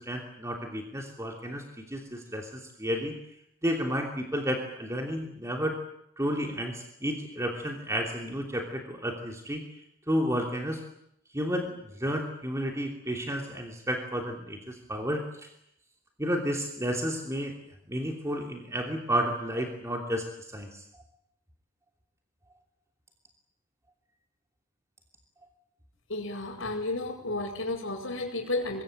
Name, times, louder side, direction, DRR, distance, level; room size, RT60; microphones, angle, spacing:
voice 1, 0.0-3.1 3.6-5.7 6.2-9.6 10.1-10.8 11.3-15.5 16.2-17.5 17.9-20.3 20.5-20.8, equal, 15° right, 2 dB, 3.0 m, -31 dB
voice 2, 26.1-28.8, left 2 dB, 65° left, -6 dB, 6.4 m, -32 dB
25.0 x 22.0 x 9.0 m, 0.75 s
head